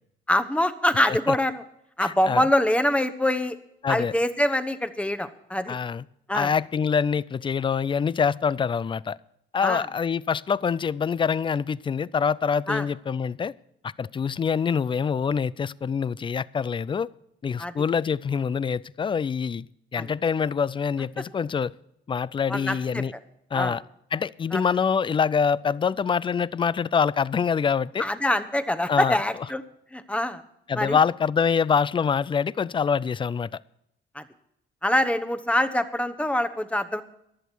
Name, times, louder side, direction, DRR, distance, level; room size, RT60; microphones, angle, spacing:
voice 1, 0.3-1.6 2.0-3.6 3.9-5.8 6.3-6.5 9.6-9.8 12.7-12.8 17.6-17.7 20.0-20.1 22.5-23.0 23.5-23.7 24.5-24.6 28.0-29.6 29.9-30.4 30.7-31.0 34.1-34.2 34.8-37.0, left 1 dB, 5° left, 11 dB, 1.0 m, -24 dB
voice 2, 2.0-2.4 3.8-4.1 5.7-6.0 6.3-9.2 9.5-13.5 13.8-17.1 17.4-19.7 19.9-21.7 22.1-23.1 23.5-23.8 24.1-28.0 28.9-29.2 30.7-33.5, left 6 dB, 25° left, 21 dB, 0.4 m, -25 dB
15.0 x 11.0 x 4.5 m, 0.78 s
cardioid pair, 90°, 20 cm